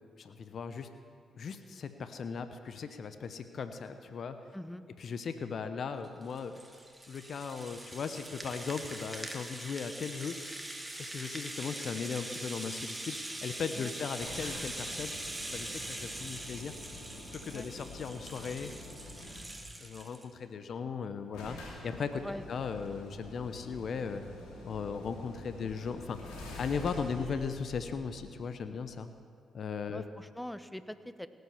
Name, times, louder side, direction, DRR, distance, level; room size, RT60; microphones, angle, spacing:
voice 1, 0.2-0.9 1.4-4.4 5.0-6.5 7.1-10.4 11.0-15.1 15.5-16.7 17.3-18.7 19.8-21.6 21.8-22.2 22.5-24.2 24.6-26.2 26.6-29.1 29.5-30.0, left 6 dB, 60° left, 9 dB, 0.8 m, -37 dB
voice 2, 4.5-4.8 13.7-13.9 17.5-17.7 22.2-22.4 29.9-31.3, left 1 dB, 5° left, 13 dB, 0.8 m, -43 dB
Rattle (instrument), 6.0-20.3, right 1 dB, 15° right, 1.7 m, -42 dB
sound 1, 14.2-19.7 20.7-20.8 21.0-21.1 21.3-28.8, left 1 dB, 80° left, 2.5 m, -47 dB
18.0 x 7.9 x 7.1 m, 2.3 s
hypercardioid pair, 40°, 0 cm